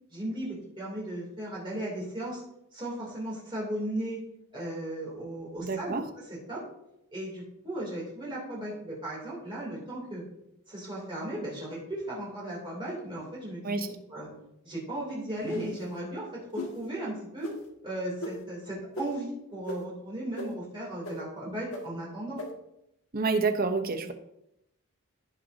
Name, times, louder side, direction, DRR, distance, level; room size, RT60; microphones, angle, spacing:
voice 1, 0.1-2.4 2.7-4.2 4.5-6.6 7.1-10.2 10.7-14.3 14.6-17.5 17.8-22.4, right 1 dB, 20° right, -5 dB, 2.9 m, -36 dB
voice 2, 5.6-6.0 13.6-13.9 23.1-24.1, right 4 dB, 40° right, 7 dB, 0.8 m, -28 dB
sound 1, 15.4-15.8 16.5-16.7 17.4-17.6 18.2-18.3 18.9-19.1 19.7-19.8 20.4-20.5 21.0-21.1 21.7-21.8 22.4-22.5, left 2 dB, 70° left, 1.7 m, -36 dB
16.0 x 5.8 x 2.7 m, 0.82 s
head